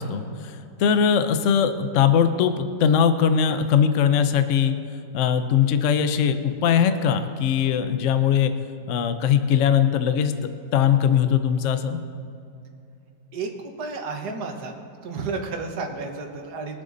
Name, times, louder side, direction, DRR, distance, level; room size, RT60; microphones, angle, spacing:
voice 1, 0.0-4.7 5.1-8.5 8.9-10.3 10.7-12.0, left 8 dB, 55° left, 9 dB, 0.9 m, -20 dB
voice 2, 13.3-14.8 15.0-16.8, right 4 dB, 60° right, 3 dB, 1.8 m, -32 dB
22.5 x 7.5 x 4.0 m, 2.6 s
omnidirectional pair, 2.0 m